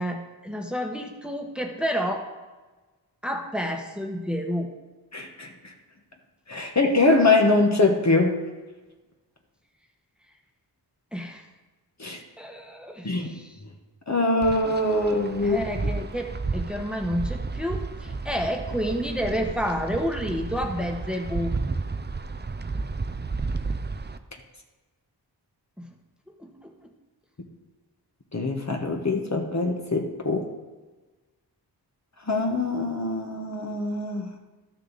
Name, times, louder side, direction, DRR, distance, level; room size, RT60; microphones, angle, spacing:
voice 1, 0.0-2.3 3.2-4.7 11.1-11.4 12.4-13.5 15.4-21.5 25.8-25.9 26.4-26.9, equal, ahead, 2 dB, 1.3 m, -30 dB
voice 2, 5.1-5.5 6.5-8.3 12.0-12.2 13.0-13.3 14.1-15.6 28.3-30.5 32.3-34.3, left 2 dB, 40° left, 2 dB, 1.3 m, -23 dB
Wind, 14.4-24.2, right 3 dB, 25° right, 0.6 m, -32 dB
12.5 x 6.4 x 4.1 m, 1.2 s
cardioid pair, 40°, 42 cm